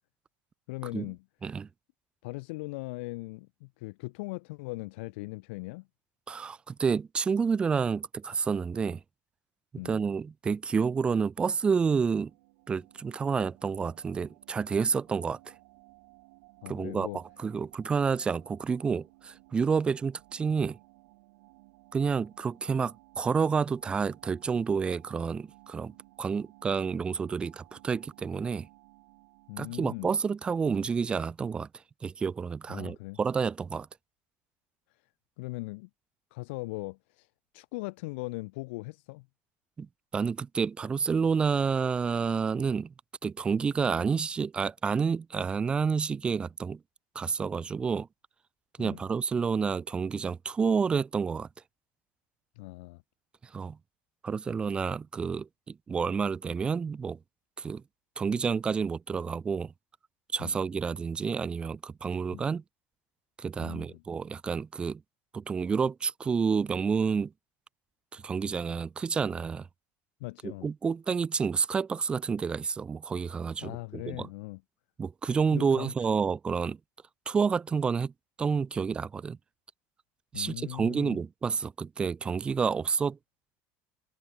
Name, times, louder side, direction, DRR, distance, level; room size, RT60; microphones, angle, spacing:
voice 1, 0.7-1.2 2.2-5.9 9.8-10.0 16.6-17.2 29.5-30.1 32.7-33.2 35.4-35.9 36.3-37.3 37.5-39.3 48.8-49.0 52.6-53.0 60.4-60.6 62.3-62.5 63.6-64.0 70.2-70.7 73.6-74.6 75.5-75.9 80.3-81.2, left 25 dB, 85° left, 2.9 m, -39 dB
voice 2, 6.3-9.0 9.8-12.3 12.7-15.5 16.7-20.8 21.9-25.9 26.2-28.7 29.6-31.7 32.0-33.9 39.8-39.9 40.1-42.9 43.2-46.8 47.2-48.1 48.8-51.5 53.5-53.8 54.2-57.2 57.6-57.8 58.2-59.7 60.3-62.6 63.4-65.0 65.3-67.3 68.1-69.7 70.4-74.3 75.0-76.8 77.3-78.1 78.4-79.4 80.3-83.2, right 5 dB, 15° right, 0.4 m, -29 dB
sound 1, 11.6-30.4, right 24 dB, 90° right, 8.0 m, -58 dB
cardioid pair, 160°, 6 cm